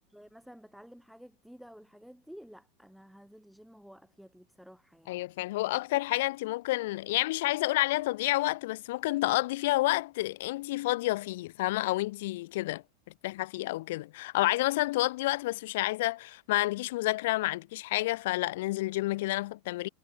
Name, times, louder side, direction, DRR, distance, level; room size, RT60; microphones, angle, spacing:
voice 1, 0.0-5.2, equal, ahead, 4.9 m, -52 dB
voice 2, 5.1-12.8 13.2-19.9, left 18 dB, 55° left, 2.2 m, -29 dB
supercardioid pair, 180°, 0 cm